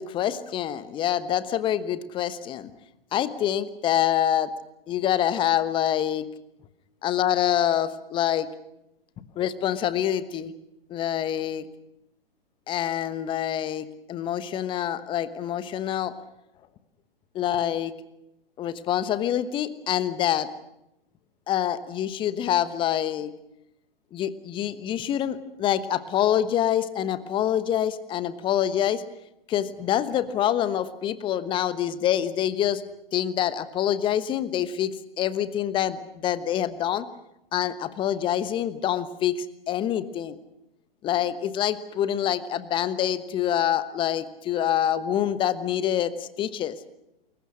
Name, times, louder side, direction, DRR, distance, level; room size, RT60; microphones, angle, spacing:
voice 1, 0.0-2.7 3.1-4.5 4.9-6.2 7.0-8.5 9.4-10.5 10.9-11.7 12.7-16.1 17.3-17.9 18.6-20.5 21.5-23.3 24.1-29.0 29.5-32.8 33.1-37.1 37.5-40.4 41.0-46.8, left 10 dB, 15° left, 14 dB, 1.1 m, -26 dB
29.0 x 22.0 x 6.4 m, 0.87 s
figure-of-eight pair, 120°, 30 cm